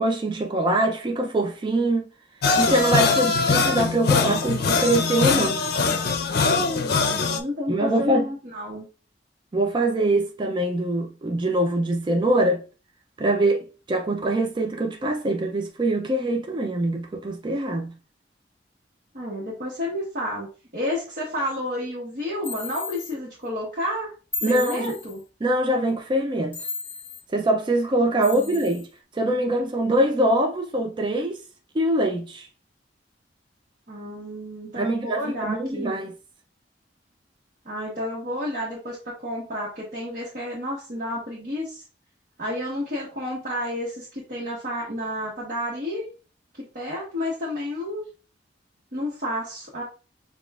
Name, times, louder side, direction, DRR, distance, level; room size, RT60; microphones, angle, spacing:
voice 1, 0.0-2.1 2.6-5.6 7.7-8.3 9.5-12.6 13.2-17.9 24.4-24.9 25.4-26.6 27.3-28.9 29.1-31.4 31.7-32.5 34.8-36.1, right 1 dB, 25° right, 0.4 m, -23 dB
sound 1, 2.4-7.4, left 4 dB, 60° left, 0.5 m, -22 dB
voice 2, 6.8-8.9 19.1-20.5 20.7-24.1 24.4-25.2 28.2-28.6 33.9-35.9 37.6-41.8 42.4-46.1 46.5-48.0 48.9-49.8, left 1 dB, 50° right, 1.2 m, -31 dB
sound 2, 22.4-23.1 24.3-25.2 26.5-27.2 28.2-28.9, left 4 dB, 10° left, 1.2 m, -34 dB
6.7 x 2.4 x 2.3 m
head